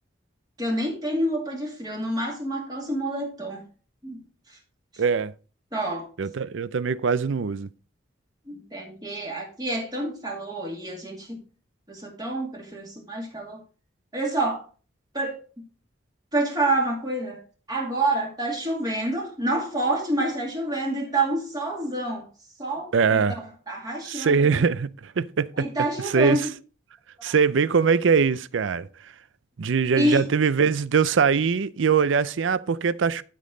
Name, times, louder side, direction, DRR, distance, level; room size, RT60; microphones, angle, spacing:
voice 1, 0.6-3.6 4.0-4.2 4.5-4.6 4.9-5.0 5.7-6.1 8.5-11.4 11.9-13.6 14.1-14.6 15.1-15.4 16.3-17.4 17.7-22.3 22.6-24.6 25.6-26.5 27.2-27.3 29.9-30.2, right 1 dB, 20° right, 2.5 m, -28 dB
voice 2, 5.0-5.3 6.2-7.7 22.9-23.4 24.1-25.7 26.0-26.4 27.2-28.9 29.6-33.2, right 5 dB, 75° right, 0.5 m, -22 dB
12.5 x 5.4 x 3.8 m
head